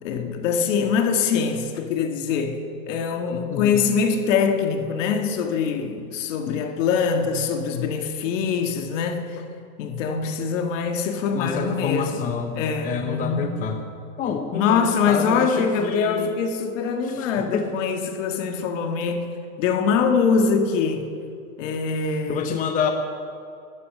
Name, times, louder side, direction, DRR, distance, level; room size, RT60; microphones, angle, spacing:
voice 1, 0.0-9.4 9.8-12.3 12.5-13.6 14.5-19.3 19.6-21.1 21.6-22.5, left 6 dB, 60° left, 1.8 m, -23 dB
voice 2, 11.3-12.6 12.8-13.8 14.2-16.3 17.5-17.7 22.3-22.9, left 6 dB, 20° left, 0.8 m, -27 dB
12.5 x 10.0 x 7.8 m
supercardioid pair, 150°, 42 cm